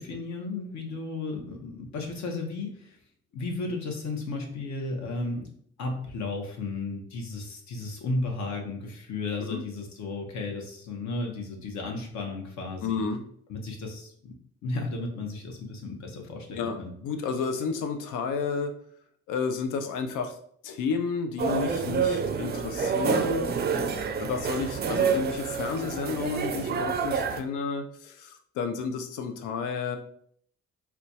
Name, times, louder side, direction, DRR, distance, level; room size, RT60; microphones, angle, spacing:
voice 1, 0.0-3.0 3.3-5.5 5.8-13.0 13.5-14.4 14.6-16.9, left 3 dB, 70° left, 2 dB, 0.9 m, -34 dB
voice 2, 12.8-13.2 16.5-18.7 19.3-20.4 20.6-23.5 24.2-30.0, left 5 dB, 85° left, 7 dB, 0.5 m, -31 dB
sound 1, 21.4-27.4, right 5 dB, 35° right, 0.4 m, -28 dB
4.2 x 2.3 x 2.7 m, 0.63 s
cardioid pair, 90°, 30 cm